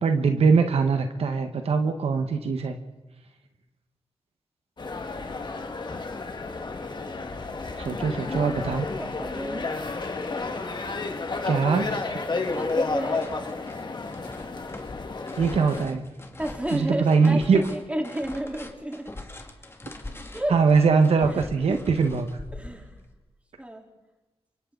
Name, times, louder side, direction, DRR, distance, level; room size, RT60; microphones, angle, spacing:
voice 1, 0.0-2.8 7.8-8.8 11.5-11.9 15.4-16.1 16.7-17.6 20.5-22.3, right 5 dB, 85° right, 6 dB, 1.5 m, -22 dB
sound 1, 4.8-15.8, left 3 dB, 50° left, 2.1 m, -31 dB
voice 2, 9.0-9.7 12.6-13.3 16.4-19.1 20.3-20.6 21.3-22.0 22.5-23.0 23.6-23.9, right 1 dB, 15° right, 1 dB, 3.9 m, -32 dB
sound 2, 11.1-11.2 11.4-23.1, left 2 dB, 25° left, 2.1 m, -43 dB
27.5 x 24.0 x 4.0 m, 1.1 s
cardioid pair, 75°, 10 cm